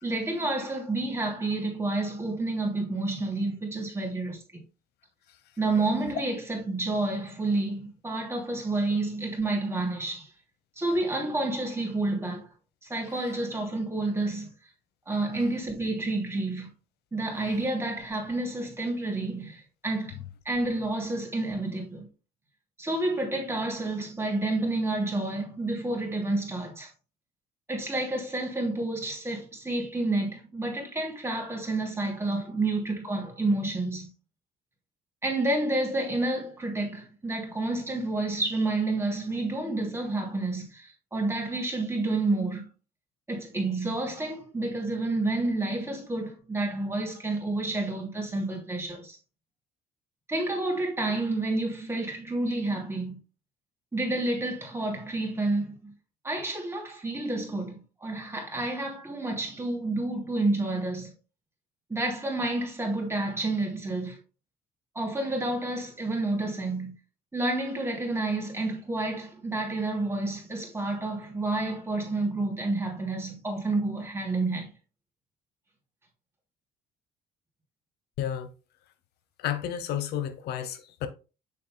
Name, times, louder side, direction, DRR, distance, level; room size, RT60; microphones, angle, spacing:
voice 1, 0.0-4.6 5.6-10.3 10.8-12.5 12.8-14.5 15.1-16.7 17.1-20.2 20.4-22.1 22.8-26.9 27.7-34.1 35.2-42.7 43.3-49.2 50.3-53.2 53.9-55.9 56.2-61.1 61.9-64.2 64.9-66.9 67.3-74.7, right 2 dB, 15° right, 2.9 m, -29 dB
voice 2, 78.2-78.5 79.4-81.1, left 10 dB, 75° left, 0.9 m, -31 dB
7.1 x 6.5 x 2.2 m
cardioid pair, 110°, 17 cm